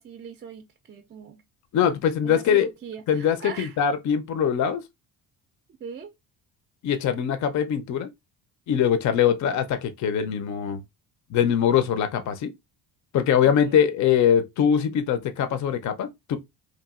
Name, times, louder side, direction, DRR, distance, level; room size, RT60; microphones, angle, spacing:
voice 1, 0.0-1.4 2.2-3.8 5.8-6.1 9.3-9.6 13.4-13.8, right 7 dB, 30° right, 0.4 m, -40 dB
voice 2, 1.7-2.7 3.1-4.8 6.8-8.1 8.7-10.8 11.3-12.5 13.1-16.4, left 8 dB, 45° left, 0.5 m, -22 dB
3.0 x 2.4 x 2.3 m
cardioid pair, 85°, 41 cm